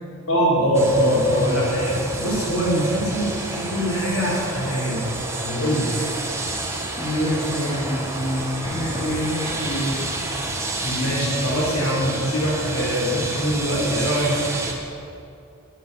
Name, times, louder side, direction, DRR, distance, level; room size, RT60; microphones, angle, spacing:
voice 1, 0.3-5.0 5.4-5.9 10.8-14.3, equal, 75° left, -4 dB, 4.6 m, -22 dB
sound 1, 0.7-14.7, right 2 dB, 15° right, 1.6 m, -29 dB
voice 2, 7.0-10.0, equal, 25° left, -6 dB, 3.7 m, -26 dB
13.5 x 10.5 x 7.8 m, 2.6 s
head